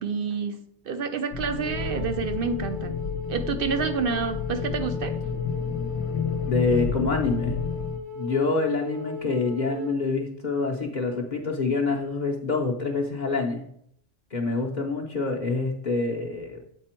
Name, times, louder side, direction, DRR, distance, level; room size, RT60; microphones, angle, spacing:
voice 1, 0.0-3.0 3.3-5.2, right 5 dB, 55° right, 8 dB, 0.7 m, -29 dB
sound 1, 1.3-8.0, left 6 dB, 85° left, 1.0 m, -31 dB
Wind instrument woodwind instrument, 1.6-10.0, left 2 dB, 85° right, 1.6 m, -37 dB
voice 2, 6.4-7.6 8.2-13.6 14.3-16.6, left 3 dB, 40° left, -1 dB, 0.8 m, -26 dB
8.1 x 4.3 x 4.4 m, 0.71 s
omnidirectional pair, 1.3 m